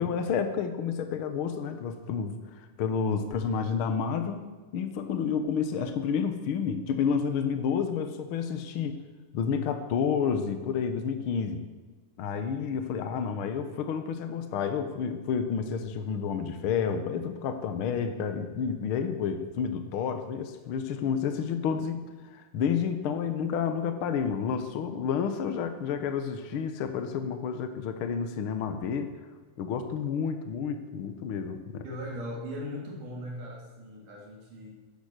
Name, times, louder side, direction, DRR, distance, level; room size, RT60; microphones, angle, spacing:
voice 1, 0.0-4.4 4.7-9.0 9.3-11.6 12.2-22.0 22.3-29.1 29.6-31.8, left 6 dB, 90° left, 8 dB, 1.1 m, -30 dB
voice 2, 31.8-34.7, equal, 60° right, -1 dB, 4.8 m, -39 dB
15.5 x 10.5 x 6.6 m, 1.3 s
omnidirectional pair, 4.1 m